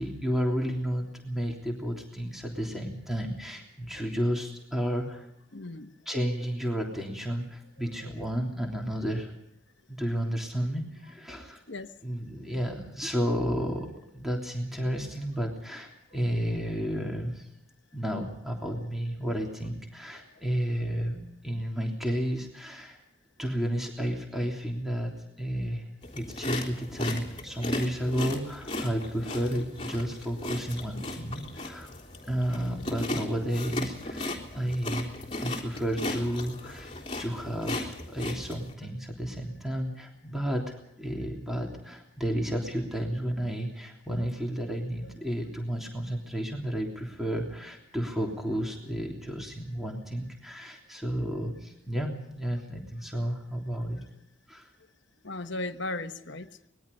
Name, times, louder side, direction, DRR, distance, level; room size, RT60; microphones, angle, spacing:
voice 1, 0.0-5.3 6.0-9.3 9.9-11.6 12.0-17.5 17.9-23.0 23.4-25.8 26.1-31.9 32.3-35.1 35.4-36.9 37.2-54.0 54.5-54.7, equal, ahead, 3.3 m, -32 dB
voice 2, 5.5-5.9 6.8-6.9 8.0-8.1 11.7-11.9 12.4-12.5 20.1-20.2 45.0-45.1 53.9-54.0 55.2-56.7, left 2 dB, 55° left, 1.3 m, -37 dB
sound 1, 26.0-38.7, left 1 dB, 25° left, 3.5 m, -36 dB
25.0 x 21.0 x 5.4 m
head